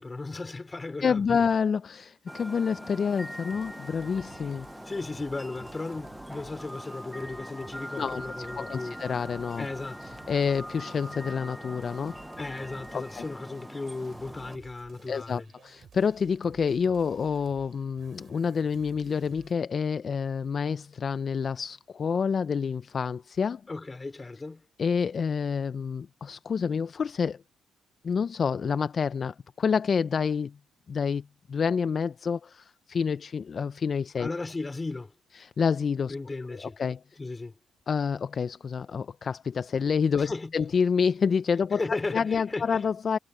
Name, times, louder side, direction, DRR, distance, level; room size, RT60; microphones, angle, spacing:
voice 1, 0.0-1.4 4.9-9.0 9.6-10.2 12.4-15.5 23.7-24.6 34.2-35.1 36.1-36.8 37.2-37.5 40.2-40.5 41.8-42.8, left 3 dB, 20° left, 3.5 m, -36 dB
voice 2, 1.0-4.7 8.0-9.7 10.3-12.2 12.9-13.2 15.1-23.6 24.8-27.4 28.0-30.6 30.9-34.3 35.4-36.1 36.5-37.0 37.9-41.8 42.1-43.2, left 6 dB, 45° left, 0.5 m, -28 dB
sound 1, 2.3-14.6, equal, ahead, 0.6 m, -42 dB
sound 2, 3.1-19.6, right 7 dB, 50° right, 7.6 m, -55 dB
cardioid pair, 90°, 0 cm